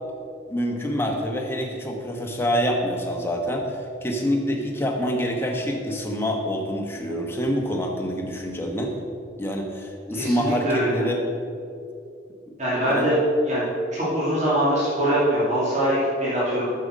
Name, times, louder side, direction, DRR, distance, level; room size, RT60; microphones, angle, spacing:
voice 1, 0.5-8.9 9.4-11.2 12.9-13.1, equal, 10° left, 1 dB, 1.1 m, -26 dB
voice 2, 10.2-11.0 12.6-13.2 13.5-13.6 13.9-16.7, equal, 40° right, -9 dB, 2.6 m, -23 dB
9.1 x 6.7 x 6.4 m, 2.5 s
head